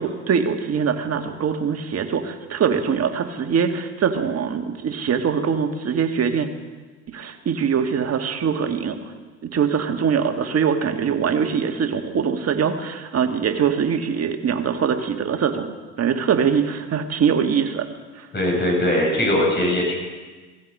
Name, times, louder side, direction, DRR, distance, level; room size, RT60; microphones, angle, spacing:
voice 1, 0.0-6.5 7.1-9.0 9.4-17.9 18.2-18.3, right 7 dB, 40° right, 6 dB, 1.8 m, -23 dB
voice 2, 18.3-20.0, left 1 dB, 25° left, 0 dB, 6.7 m, -20 dB
16.5 x 15.5 x 5.4 m, 1.3 s
hypercardioid pair, 75°, 37 cm